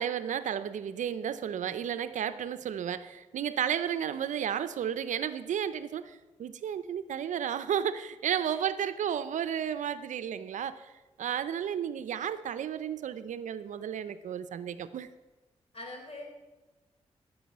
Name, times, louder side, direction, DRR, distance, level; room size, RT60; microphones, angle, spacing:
voice 1, 0.0-10.9 11.2-15.1, right 9 dB, 75° right, 13 dB, 0.6 m, -33 dB
voice 2, 15.7-16.2, left 2 dB, 50° left, 1 dB, 4.3 m, -43 dB
12.5 x 6.3 x 7.3 m, 1.1 s
supercardioid pair, 45°, 13 cm